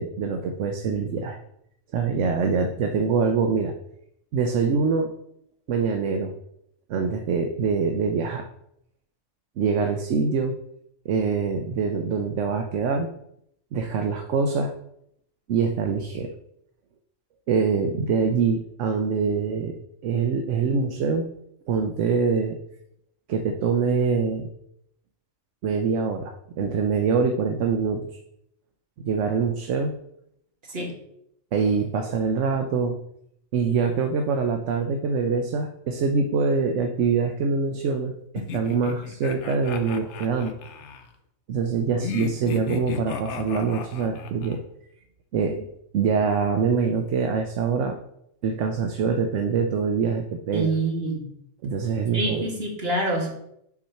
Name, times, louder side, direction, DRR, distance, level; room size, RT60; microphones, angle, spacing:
voice 1, 0.0-1.4 1.9-3.7 4.3-5.1 5.7-6.3 6.9-8.4 9.6-10.5 11.0-13.1 13.7-14.7 15.5-16.3 17.5-19.7 20.0-21.3 21.7-22.6 23.3-24.5 25.6-28.0 29.0-29.9 31.5-33.0 33.5-40.6 41.5-44.6 45.3-45.7 45.9-48.0 48.4-50.7 51.6-52.4, right 5 dB, 75° right, 5 dB, 1.0 m, -24 dB
sound 1, 38.4-41.1 42.0-44.6, left 6 dB, 70° left, 1.0 m, -34 dB
voice 2, 50.5-51.2 52.1-53.3, right 2 dB, 50° right, -1 dB, 2.0 m, -26 dB
6.1 x 4.3 x 5.7 m, 0.74 s
omnidirectional pair, 1.3 m